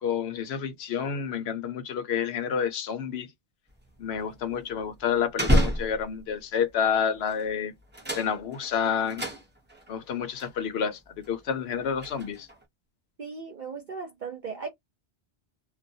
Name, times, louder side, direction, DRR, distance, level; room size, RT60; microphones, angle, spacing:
voice 1, 0.0-3.3 4.0-7.7 8.2-9.2 9.9-11.0 11.3-12.5, left 7 dB, 65° left, 0.8 m, -29 dB
sound 1, 3.7-6.4 7.2-7.5 7.8-9.9 10.4-10.5 11.1-12.6, equal, 10° right, 0.6 m, -30 dB
voice 2, 13.2-14.7, right 5 dB, 50° right, 0.7 m, -37 dB
2.2 x 2.2 x 2.6 m
omnidirectional pair, 1.2 m